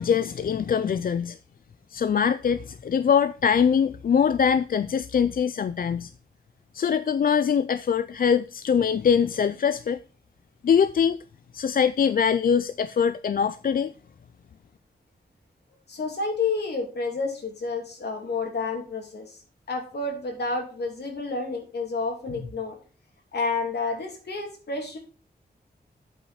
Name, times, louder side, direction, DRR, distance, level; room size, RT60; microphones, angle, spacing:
voice 1, 0.0-1.4 1.9-6.1 6.7-10.0 10.6-11.2 11.5-13.9, left 7 dB, 60° left, 0.4 m, -23 dB
voice 2, 15.9-19.4 19.7-22.8 23.3-25.0, left 3 dB, 80° left, 2.8 m, -30 dB
8.6 x 5.2 x 4.9 m
wide cardioid pair, 100°, 17 cm